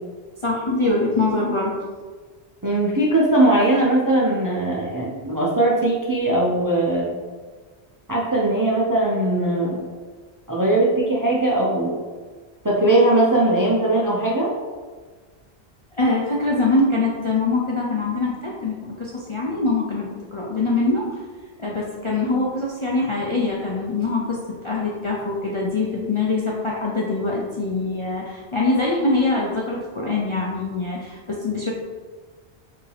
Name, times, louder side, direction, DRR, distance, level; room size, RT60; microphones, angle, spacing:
voice 1, 0.4-1.7 16.0-21.2 21.6-31.7, left 3 dB, 45° left, -4 dB, 0.4 m, -23 dB
voice 2, 2.6-7.1 8.1-9.8 10.5-12.0 12.6-14.5, right 1 dB, 30° right, -4 dB, 0.4 m, -20 dB
4.6 x 2.7 x 3.3 m, 1.4 s
omnidirectional pair, 1.1 m